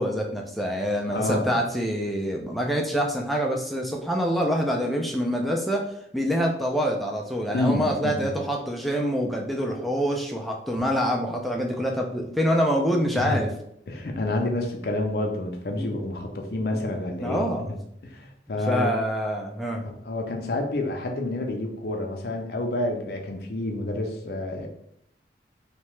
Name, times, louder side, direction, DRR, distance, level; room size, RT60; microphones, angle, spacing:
voice 1, 0.0-5.8 6.1-13.5 15.8-15.9 16.7-16.9 17.2-17.7 18.7-19.9, equal, ahead, 0 dB, 0.3 m, -26 dB
voice 2, 1.0-1.6 7.5-8.3 13.1-13.4 13.9-17.8 18.0-18.9 19.8-24.7, left 2 dB, 60° left, 3 dB, 0.5 m, -29 dB
2.8 x 2.1 x 3.1 m, 0.73 s
head